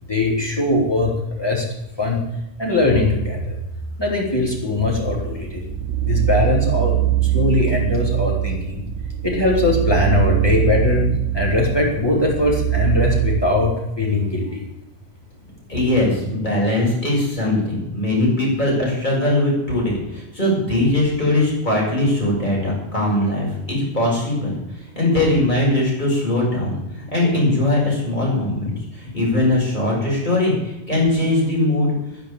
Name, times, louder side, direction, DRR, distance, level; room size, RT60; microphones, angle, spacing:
voice 1, 0.0-1.7 2.0-2.2 2.6-3.6 4.0-5.6 6.0-6.9 7.2-8.8 9.2-11.1 11.3-14.6, left 2 dB, 20° left, -2 dB, 4.0 m, -20 dB
sound 1, 5.1-13.4, right 13 dB, 80° right, 1.2 m, -22 dB
voice 2, 15.7-24.6 25.0-26.8 27.1-31.9, left 1 dB, 40° left, -4 dB, 7.0 m, -20 dB
10.5 x 10.5 x 9.1 m, 0.90 s
omnidirectional pair, 1.2 m